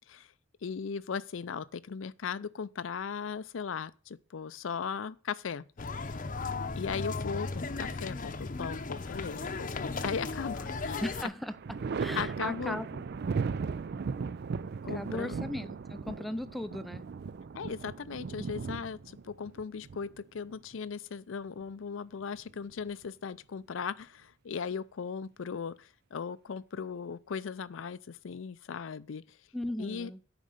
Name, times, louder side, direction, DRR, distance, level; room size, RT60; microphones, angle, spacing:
voice 1, 0.6-5.6 6.0-6.2 6.8-11.0 12.2-12.8 14.8-15.4 17.5-29.4 29.8-30.1, left 6 dB, 75° left, 0.5 m, -38 dB
sound 1, 5.8-11.3, left 3 dB, 40° left, 0.7 m, -36 dB
Thunder, 10.0-10.8 11.1-20.7 22.2-23.1, right 5 dB, 55° right, 0.4 m, -37 dB
voice 2, 11.0-13.0 14.9-17.1 29.5-30.2, left 1 dB, ahead, 0.5 m, -37 dB
9.1 x 5.3 x 6.6 m
head